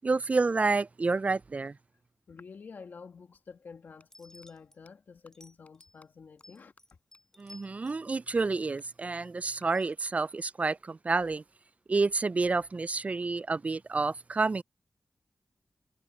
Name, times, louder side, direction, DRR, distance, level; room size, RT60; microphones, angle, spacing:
voice 1, 0.0-1.8 7.4-11.4 11.9-14.6, right 3 dB, 45° right, 0.3 m, -29 dB
voice 2, 2.3-6.7, left 5 dB, 80° left, 1.8 m, -49 dB
sound 1, 4.0-4.1 4.4-4.5 4.9-5.0 5.3-5.4 5.7-5.8 6.0-6.1 6.4-6.5 6.8-6.9 7.1-7.2 7.5-7.6 7.9-8.0 8.3-8.4 8.8-8.9 9.2-9.3 9.6-9.7 11.3-12.4, left 3 dB, 50° left, 4.6 m, -64 dB
sound 2, 4.1-4.8 5.3-6.0 6.4-8.1 8.5-9.3 9.7-9.9, left 1 dB, 15° left, 2.6 m, -56 dB
cardioid pair, 45°, 3 cm